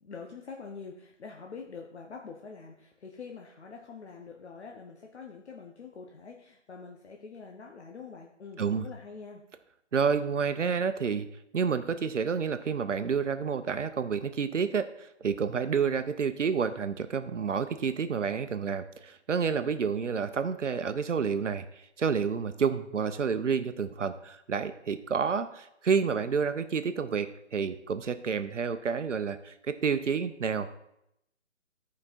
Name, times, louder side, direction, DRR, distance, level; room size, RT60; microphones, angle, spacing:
voice 1, 0.0-9.4, left 5 dB, 65° left, 1 dB, 1.1 m, -45 dB
voice 2, 9.9-11.3 11.5-30.7, right 6 dB, 75° right, 10 dB, 0.9 m, -29 dB
12.0 x 5.2 x 4.2 m, 0.79 s
figure-of-eight pair, 155°, 36 cm